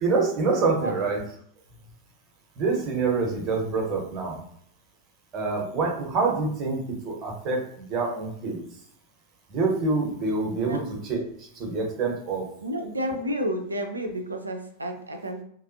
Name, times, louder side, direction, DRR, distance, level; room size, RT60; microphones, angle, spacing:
voice 1, 0.0-1.2 2.6-4.4 5.3-8.6 9.5-12.5, right 3 dB, 35° right, 0 dB, 1.0 m, -26 dB
voice 2, 12.6-15.4, equal, 80° right, 4 dB, 0.5 m, -30 dB
2.9 x 2.4 x 2.6 m, 0.66 s
figure-of-eight pair, 90°, 0 cm